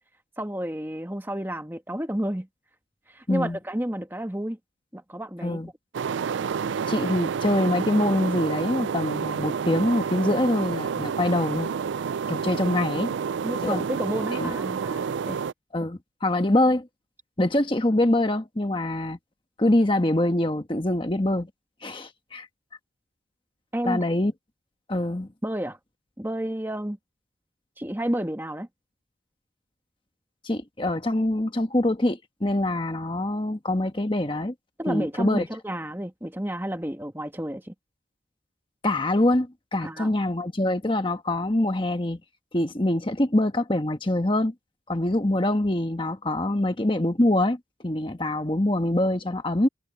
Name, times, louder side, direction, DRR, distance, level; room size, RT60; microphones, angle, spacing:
voice 1, 0.4-2.5 3.1-4.6 4.9-5.7 13.4-15.4 23.7-24.0 25.4-25.8 26.2-27.0 27.8-28.7 34.8-37.7 39.8-40.1, right 1 dB, 10° right, 1.4 m, -31 dB
voice 2, 3.3-3.6 5.4-5.7 6.9-11.7 12.3-13.1 13.6-13.8 14.3-14.5 15.7-16.9 17.4-19.2 19.6-21.5 21.8-22.5 23.8-24.3 24.9-25.3 30.4-34.5 34.9-35.5 38.8-42.2 42.5-44.5 44.9-49.7, left 1 dB, 25° left, 1.3 m, -24 dB
sound 1, 5.9-15.5, right 6 dB, 70° right, 0.4 m, -29 dB
head